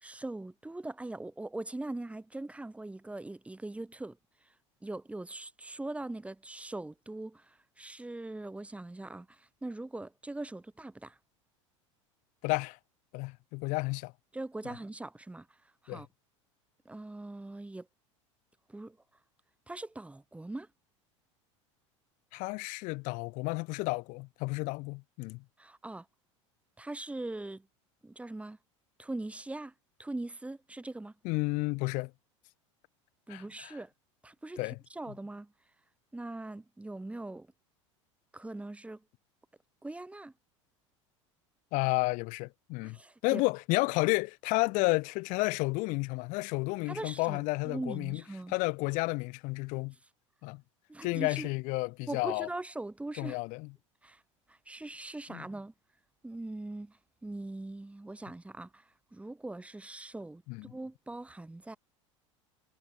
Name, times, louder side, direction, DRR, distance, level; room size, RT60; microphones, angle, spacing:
voice 1, 0.0-4.2 4.8-11.2 14.3-15.5 15.8-16.1 16.8-17.9 18.7-19.0 19.7-20.7 25.6-26.0 26.8-27.7 28.0-28.6 29.0-29.7 30.0-31.1 33.3-33.9 34.2-35.5 36.1-37.5 38.3-39.0 39.8-40.3 42.8-43.4 46.9-48.5 50.9-51.5 52.1-53.4 54.0-54.2 54.5-55.7 56.2-60.4 60.7-61.8, right 2 dB, 10° right, 1.5 m, -41 dB
voice 2, 12.4-12.8 13.1-14.1 14.6-14.7 15.9-16.0 22.3-25.4 31.2-32.1 33.3-33.8 34.6-34.8 41.7-43.0 43.2-48.2 48.5-49.9 50.4-50.6 51.0-52.5 53.2-53.7 55.3-55.4 60.5-60.7, left 26 dB, 55° left, 0.5 m, -31 dB
hypercardioid pair, 85°, 16 cm